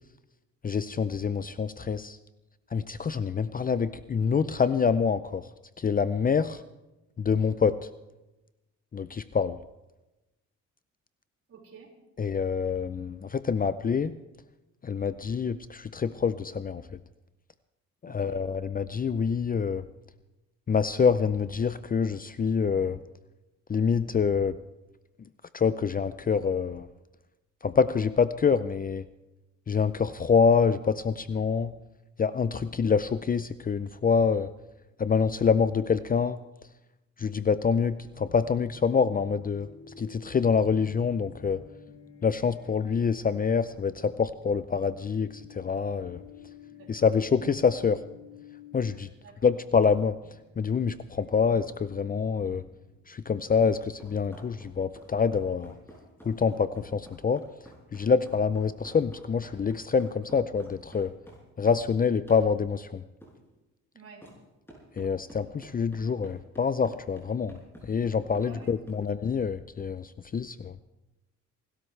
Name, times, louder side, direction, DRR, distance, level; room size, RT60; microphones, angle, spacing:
voice 1, 0.6-2.2 2.7-5.4 5.8-6.6 7.2-7.8 8.9-9.6 12.2-14.1 14.8-16.8 18.0-19.8 20.7-23.0 23.7-24.6 25.5-26.9 27.6-29.0 29.7-31.7 32.2-34.5 35.0-36.4 37.2-39.7 40.0-41.6 42.2-45.3 45.5-46.2 46.9-48.0 48.7-49.1 49.4-50.2 50.6-52.6 53.1-55.7 56.3-57.4 57.9-61.1 61.6-63.0 65.0-67.6 67.8-70.7, left 6 dB, 30° left, 14 dB, 0.5 m, -26 dB
voice 2, 11.5-11.9 18.0-18.4 46.7-47.1 49.2-49.5 63.9-64.3 68.4-69.1, right 4 dB, 50° right, -1 dB, 5.1 m, -51 dB
sound 1, 38.0-53.2, left 6 dB, 75° left, 6.2 m, -52 dB
sound 2, 53.7-61.9 62.3-62.5 63.2-63.4 64.2-64.4 64.7-69.0, equal, 10° left, 7.1 m, -50 dB
29.5 x 12.5 x 3.3 m, 1.0 s
cardioid pair, 90°, 30 cm